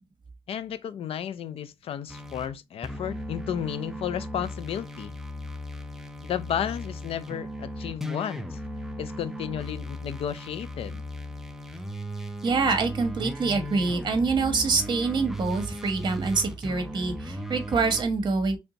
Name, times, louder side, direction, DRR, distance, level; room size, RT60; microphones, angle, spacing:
voice 1, 0.5-5.1 6.2-8.6 9.0-11.0, left 9 dB, 80° left, 0.4 m, -33 dB
sound 1, 2.1-2.5 2.8-18.0, equal, 5° right, 0.5 m, -37 dB
voice 2, 12.4-18.6, right 4 dB, 50° right, 1.1 m, -25 dB
3.4 x 2.6 x 3.9 m
cardioid pair, 105°, 10 cm